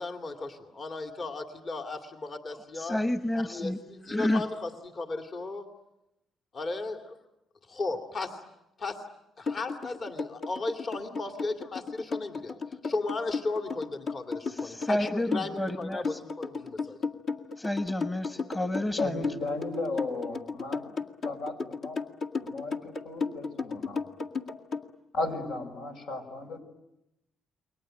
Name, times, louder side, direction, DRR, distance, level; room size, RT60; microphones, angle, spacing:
voice 1, 0.0-0.5 0.8-3.0 3.4-5.7 6.5-7.0 7.7-8.4 8.8-9.0 9.4-12.5 12.8-17.0, left 3 dB, 45° left, 5 dB, 2.5 m, -35 dB
voice 2, 2.7-3.8 4.1-4.5 14.5-16.2 17.3-19.3, left 1 dB, 15° left, 9 dB, 1.3 m, -30 dB
sound 1, 9.5-24.9, left 4 dB, 60° left, 2.0 m, -34 dB
voice 3, 19.0-21.0 21.2-22.0 22.4-24.0 25.1-26.6, left 2 dB, 85° left, 5 dB, 5.3 m, -35 dB
29.5 x 22.5 x 9.0 m, 0.89 s
cardioid pair, 90°, 0 cm